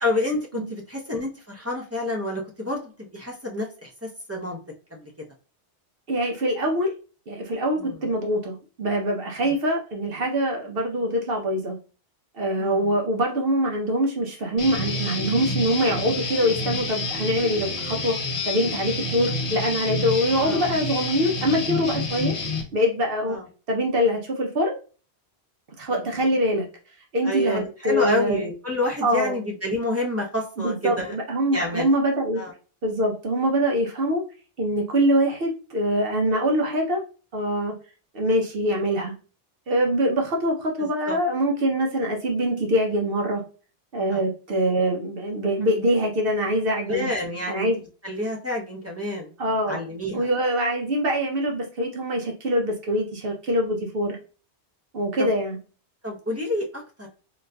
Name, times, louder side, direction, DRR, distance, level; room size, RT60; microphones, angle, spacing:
voice 1, 0.0-2.8 3.1-4.6 4.9-5.1 7.8-7.9 9.4-9.5 12.6-12.9 20.4-20.7 23.3-23.4 25.9-26.2 27.2-31.1 31.5-31.9 32.4-32.5 41.1-41.2 44.1-44.2 46.9-47.7 48.0-49.3 49.7-50.3 55.2-55.3 56.0-57.1, left 1 dB, 20° right, -2 dB, 0.5 m, -28 dB
voice 2, 6.1-6.9 7.3-11.8 12.4-18.1 18.4-22.3 22.7-23.4 23.7-24.8 25.8-26.7 27.1-28.4 29.0-29.3 30.6-32.4 32.8-34.2 34.6-37.0 37.3-37.7 38.1-39.1 39.7-43.4 43.9-47.1 47.5-47.8 49.4-49.8 50.1-54.2 54.9-55.6, equal, 60° right, 1 dB, 0.8 m, -24 dB
Guitar, 14.6-22.6, left 2 dB, 35° left, 0.6 m, -29 dB
3.9 x 2.4 x 2.2 m, 0.36 s
omnidirectional pair, 1.2 m